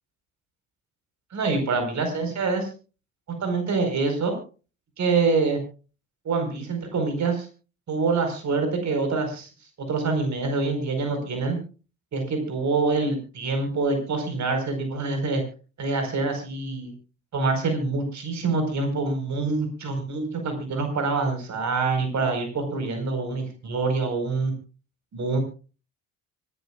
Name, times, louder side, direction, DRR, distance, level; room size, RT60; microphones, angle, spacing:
voice 1, 1.3-2.7 3.4-4.4 5.0-5.6 6.2-7.5 7.9-9.5 9.8-11.6 12.1-15.4 15.8-16.9 17.3-24.5 25.1-25.4, right 3 dB, 40° right, 6 dB, 4.7 m, -25 dB
25.0 x 12.0 x 2.4 m, 0.35 s
figure-of-eight pair, 50°, 41 cm